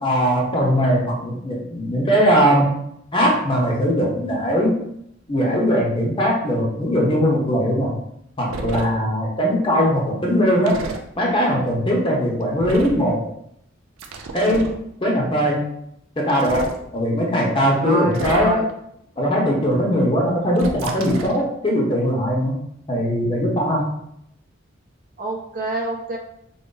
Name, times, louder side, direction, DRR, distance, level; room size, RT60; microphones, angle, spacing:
voice 1, 0.0-2.7 3.1-4.8 5.3-7.9 8.4-10.8 11.2-13.2 14.3-14.7 15.0-15.6 16.2-16.7 16.9-18.6 19.2-22.6 22.9-23.8, equal, 25° left, -2 dB, 0.8 m, -20 dB
sound 1, 8.5-8.9 10.7-11.0 12.6-13.0 14.0-14.8 16.3-16.8 18.1-18.7 20.6-21.4, right 3 dB, 90° right, 0.5 m, -30 dB
voice 2, 17.8-18.7 25.2-26.2, right 2 dB, 45° right, -1 dB, 0.7 m, -27 dB
3.9 x 2.0 x 3.8 m, 0.74 s
head